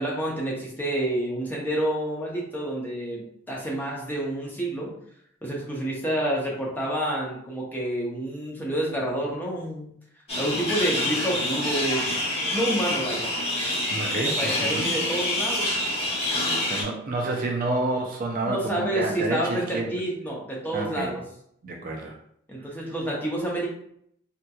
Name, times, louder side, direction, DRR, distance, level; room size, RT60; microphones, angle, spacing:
voice 1, 0.0-4.9 5.4-9.9 10.4-12.1 12.5-13.3 14.2-15.7 16.3-16.6 18.4-21.2 22.5-23.7, right 1 dB, 10° left, -3 dB, 0.7 m, -29 dB
sound 1, 10.3-16.8, left 1 dB, 30° left, 1.0 m, -27 dB
voice 2, 13.9-15.0 16.7-19.9 20.7-21.1 21.6-22.1, right 2 dB, 40° right, 1 dB, 0.4 m, -29 dB
3.5 x 2.8 x 2.3 m, 0.70 s
head